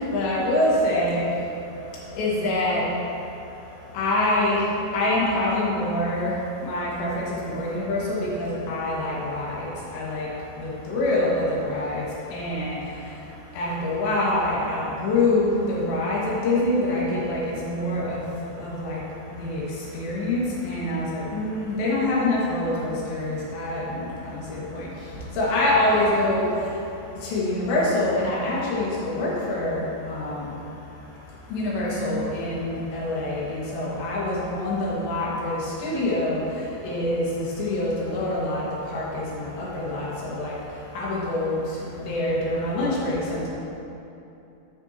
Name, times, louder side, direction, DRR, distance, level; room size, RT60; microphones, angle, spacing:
voice 1, 0.1-1.2 2.2-2.8 3.9-4.6 4.9-6.3 6.6-9.7 9.9-10.3 10.6-12.0 12.3-12.8 13.6-19.0 19.4-19.6 19.9-24.0 24.5-24.9 25.4-26.5 27.2-30.4 31.5-36.4 36.8-38.6 38.9-40.5 41.0-41.6 42.1-43.5, left 1 dB, 75° left, -6 dB, 4.1 m, -25 dB
12.0 x 10.0 x 3.0 m, 2.9 s
omnidirectional pair, 5.2 m